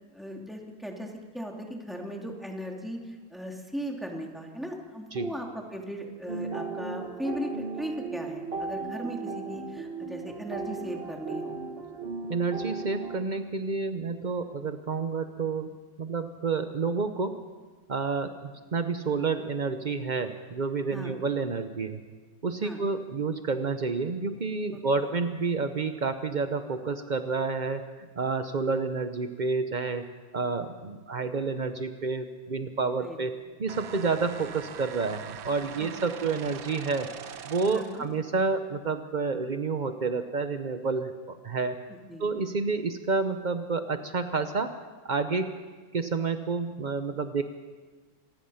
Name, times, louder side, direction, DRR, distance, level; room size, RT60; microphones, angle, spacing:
voice 1, 0.1-11.6 20.9-21.2 22.6-22.8 33.0-33.2 35.8-35.9 37.7-38.1 41.9-42.3, equal, ahead, 0 dB, 2.7 m, -37 dB
sound 1, 6.3-13.2, right 4 dB, 35° right, 1.5 m, -36 dB
voice 2, 12.3-15.7 16.0-17.4 17.9-22.0 22.4-30.1 30.3-37.1 37.4-41.8 42.2-44.8 45.0-45.6 45.9-47.4, right 4 dB, 65° right, 8 dB, 0.4 m, -29 dB
sound 2, 33.7-38.1, right 8 dB, 85° right, 1.8 m, -42 dB
26.5 x 19.0 x 5.7 m, 1.4 s
omnidirectional pair, 2.1 m